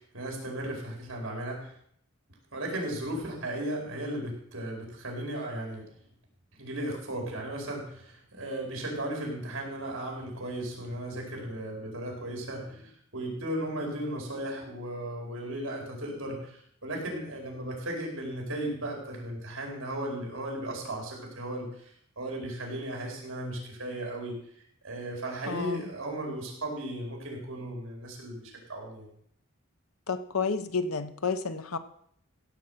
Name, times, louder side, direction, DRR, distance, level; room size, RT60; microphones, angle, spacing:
voice 1, 0.0-1.7 2.5-5.9 6.5-24.4 24.8-29.1, right 1 dB, 65° right, 0 dB, 4.7 m, -36 dB
voice 2, 25.5-25.9 30.1-31.8, left 5 dB, 90° left, 10 dB, 1.0 m, -31 dB
16.0 x 7.7 x 5.7 m, 0.67 s
head